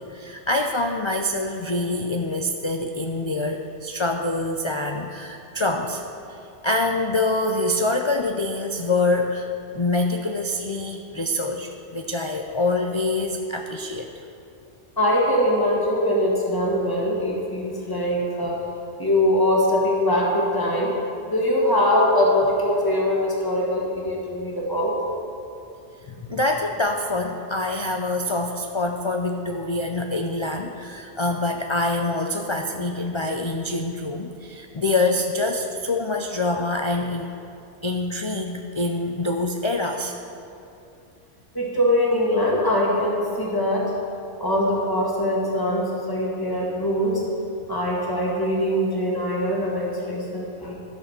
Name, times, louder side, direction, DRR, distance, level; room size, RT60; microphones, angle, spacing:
voice 1, 0.0-6.0 6.3-6.4 6.6-9.5 9.7-14.1 26.0-37.4 37.8-40.2, left 2 dB, 50° left, 3 dB, 0.3 m, -25 dB
voice 2, 15.0-18.6 19.0-20.9 21.3-24.9 41.5-43.9 44.4-47.2 47.7-50.7, left 1 dB, 20° left, -3 dB, 1.8 m, -22 dB
13.0 x 6.5 x 5.9 m, 2.6 s
omnidirectional pair, 1.2 m